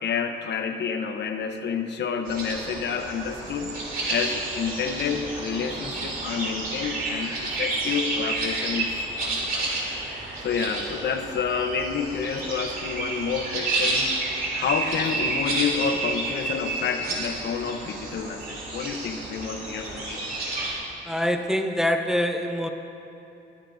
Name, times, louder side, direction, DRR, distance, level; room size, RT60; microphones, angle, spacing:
voice 1, 0.0-3.7 4.1-8.9 9.2-9.8 10.4-14.1 14.6-20.3, left 6 dB, 60° left, 7 dB, 0.9 m, -29 dB
sound 1, 2.3-20.7, right 2 dB, 45° right, 3.1 m, -30 dB
voice 2, 21.1-22.7, left 1 dB, ahead, 4 dB, 0.7 m, -25 dB
21.5 x 9.9 x 2.6 m, 2.8 s
cardioid pair, 90°, 20 cm